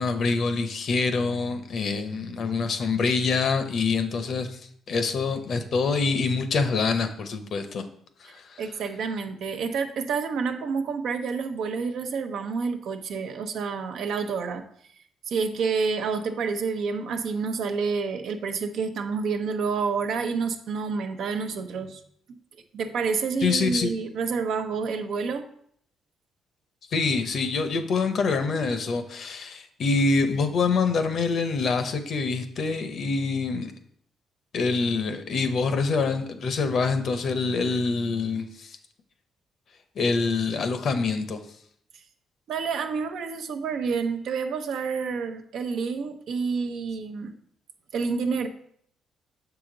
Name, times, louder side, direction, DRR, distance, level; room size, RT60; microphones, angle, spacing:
voice 1, 0.0-4.6 4.9-7.8 8.2-8.6 23.4-23.9 26.9-33.7 34.5-38.8 40.0-41.4, left 4 dB, 60° left, 8 dB, 0.7 m, -25 dB
voice 2, 8.6-14.6 15.3-22.0 22.7-25.5 42.5-47.3 47.9-48.5, right 5 dB, 75° right, 6 dB, 0.7 m, -28 dB
6.9 x 4.9 x 3.8 m, 0.66 s
cardioid pair, 90°, 0 cm